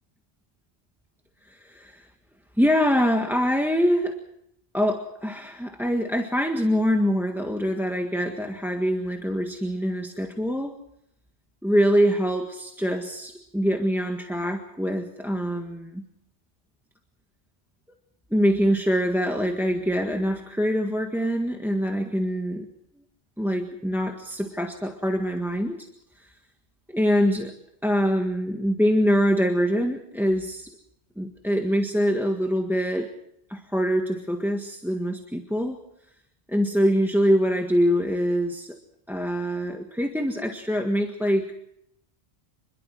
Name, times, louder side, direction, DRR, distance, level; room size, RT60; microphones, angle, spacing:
voice 1, 1.5-2.1 2.6-4.2 4.7-10.7 11.6-16.0 18.3-22.7 23.4-25.9 26.9-27.5 27.8-30.7 31.2-33.1 33.5-35.8 36.5-38.8 39.1-41.5, equal, ahead, 4 dB, 1.6 m, -24 dB
26.5 x 22.0 x 4.8 m, 0.77 s
omnidirectional pair, 1.1 m